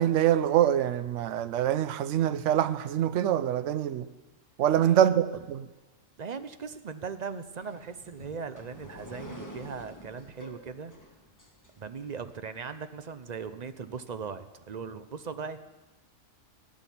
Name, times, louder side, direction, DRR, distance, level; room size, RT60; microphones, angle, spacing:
voice 1, 0.0-4.1 4.6-5.7, right 11 dB, 70° right, 0.9 m, -25 dB
voice 2, 4.7-5.0 6.2-10.9 11.8-15.6, right 5 dB, 45° right, 0.6 m, -39 dB
sound 1, 7.6-12.3, equal, 15° left, 1.4 m, -48 dB
16.0 x 6.2 x 10.0 m
omnidirectional pair, 1.3 m